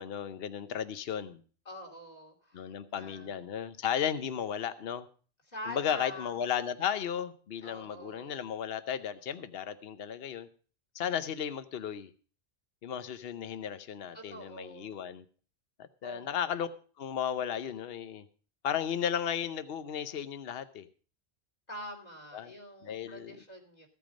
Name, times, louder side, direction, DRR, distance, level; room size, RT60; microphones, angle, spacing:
voice 1, 0.0-1.4 2.5-5.1 5.7-10.5 10.9-12.1 12.8-15.2 15.8-16.7 17.0-18.2 18.6-20.9 22.3-22.5 22.8-23.4, left 8 dB, 65° left, 12 dB, 1.0 m, -34 dB
voice 2, 1.6-3.3 5.5-6.4 7.6-8.4 14.1-15.0 16.0-16.5 21.7-23.9, equal, 40° left, 3 dB, 3.0 m, -46 dB
15.0 x 8.4 x 5.1 m, 0.41 s
omnidirectional pair, 1.1 m